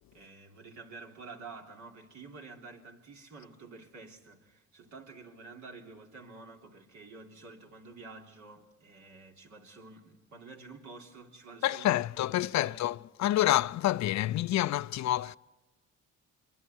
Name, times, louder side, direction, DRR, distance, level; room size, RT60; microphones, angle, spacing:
voice 1, 0.1-13.0, right 3 dB, 70° right, 3.5 m, -49 dB
voice 2, 11.6-15.4, left 14 dB, 65° left, 0.5 m, -28 dB
25.0 x 23.5 x 4.5 m
cardioid pair, 90°, 30 cm